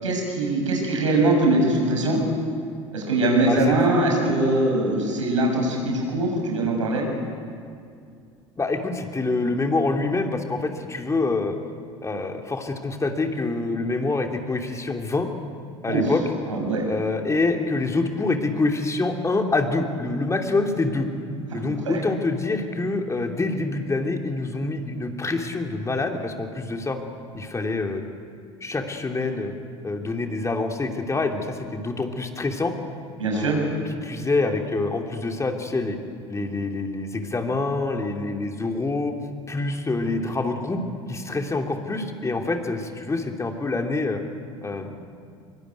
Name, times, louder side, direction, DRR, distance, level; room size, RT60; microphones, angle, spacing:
voice 1, 0.0-2.2 2.9-7.1 15.9-16.0 16.5-16.8 21.5-22.0 33.2-33.6, right 2 dB, 80° right, 0 dB, 7.1 m, -22 dB
voice 2, 8.6-11.6 12.0-15.3 15.8-16.2 16.9-21.1 21.5-27.0 27.3-28.0 28.6-29.5 29.8-32.7 33.3-36.0 36.3-39.1 39.5-40.8 41.1-44.2 44.6-44.9, left 3 dB, 20° left, 3 dB, 3.0 m, -26 dB
24.5 x 23.5 x 9.5 m, 2.3 s
figure-of-eight pair, 70°, 16 cm